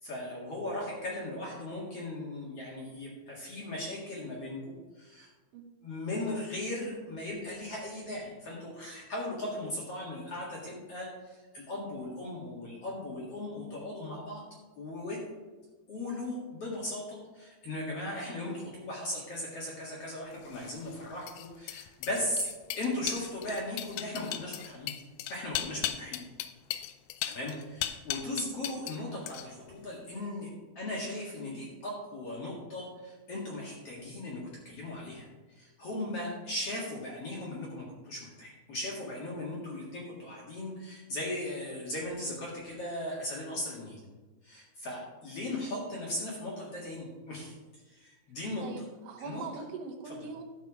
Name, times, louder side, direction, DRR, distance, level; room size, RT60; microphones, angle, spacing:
voice 1, 0.0-5.3 5.8-14.4 14.8-15.2 15.9-22.5 22.8-24.9 25.2-26.2 27.3-30.5 30.8-44.0 44.4-47.6 47.8-48.7 49.2-49.5 50.0-50.3, left 1 dB, 45° left, -4 dB, 2.4 m, -38 dB
voice 2, 18.3-18.6 31.5-31.7 48.6-50.4, right 5 dB, 70° right, 2 dB, 1.5 m, -42 dB
sound 1, 20.5-29.0 29.3-29.7, left 13 dB, 85° left, 2.4 m, -37 dB
12.0 x 5.9 x 4.9 m, 1.3 s
omnidirectional pair, 4.4 m